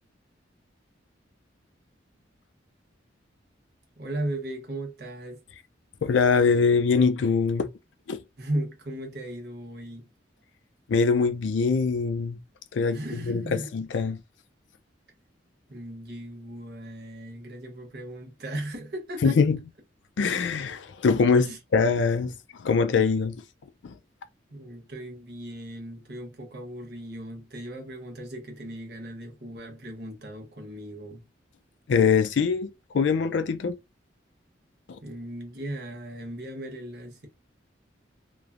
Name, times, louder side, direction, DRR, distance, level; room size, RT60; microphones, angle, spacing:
voice 1, 4.0-5.4 8.4-10.1 12.9-13.7 15.7-19.4 21.4-21.6 24.5-31.2 35.0-37.3, right 1 dB, 60° right, 1.0 m, -37 dB
voice 2, 6.0-7.7 8.1-8.2 10.9-12.4 12.7-13.0 13.3-14.2 19.2-19.6 20.2-22.3 22.6-23.3 23.8-23.9 31.9-32.7 32.9-33.8, left 5 dB, 75° left, 0.4 m, -23 dB
3.0 x 2.1 x 2.4 m
head